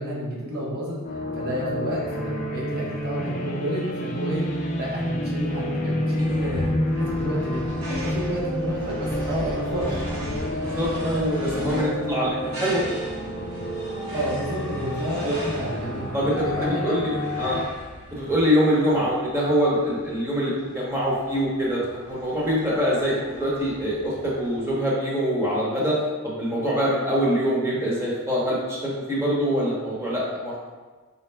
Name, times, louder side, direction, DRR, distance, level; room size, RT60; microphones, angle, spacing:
voice 1, 0.0-6.7 6.9-10.0 14.1-16.9 17.4-17.5, equal, 45° right, -5 dB, 1.0 m, -30 dB
sound 1, 1.0-17.6, left 1 dB, 35° left, 0.5 m, -29 dB
sound 2, 6.2-24.7, equal, 70° right, 1.1 m, -37 dB
voice 2, 10.6-12.8 15.0-15.4 16.1-17.6 18.1-21.8 22.1-30.7, equal, 10° right, -6 dB, 0.8 m, -24 dB
4.3 x 3.5 x 2.2 m, 1.4 s
head